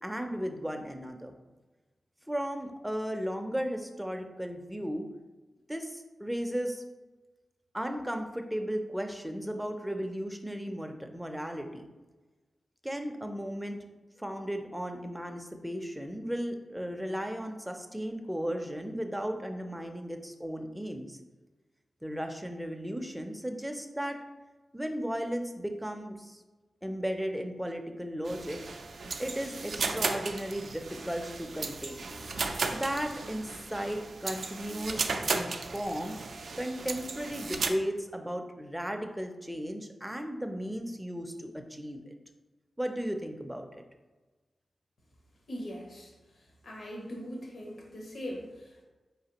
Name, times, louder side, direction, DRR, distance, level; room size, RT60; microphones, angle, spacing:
voice 1, 0.0-1.4 2.3-5.1 5.7-6.8 7.7-11.9 12.8-13.8 14.2-21.2 22.0-24.2 24.7-26.4 26.8-28.6 29.2-36.1 36.6-42.1 42.8-43.8, equal, 5° right, 4 dB, 0.4 m, -35 dB
sound 1, 28.3-37.7, right 4 dB, 70° right, 0.3 m, -35 dB
voice 2, 45.5-46.1 46.6-48.8, equal, 70° left, -2 dB, 1.0 m, -40 dB
4.6 x 3.2 x 2.9 m, 1.2 s
wide cardioid pair, 105°, 0 cm